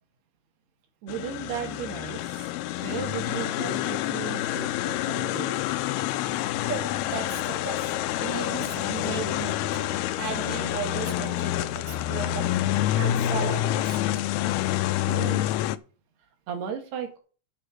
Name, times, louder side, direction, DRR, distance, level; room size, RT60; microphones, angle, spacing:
voice 1, 1.0-2.5 2.8-5.6 15.0-15.5 16.5-17.2, right 7 dB, 90° right, 4.0 m, -35 dB
sound 1, 1.1-15.8, left 13 dB, 85° left, 2.6 m, -28 dB
voice 2, 6.7-14.0, right 6 dB, 30° right, 1.5 m, -36 dB
8.6 x 7.8 x 6.4 m
omnidirectional pair, 4.5 m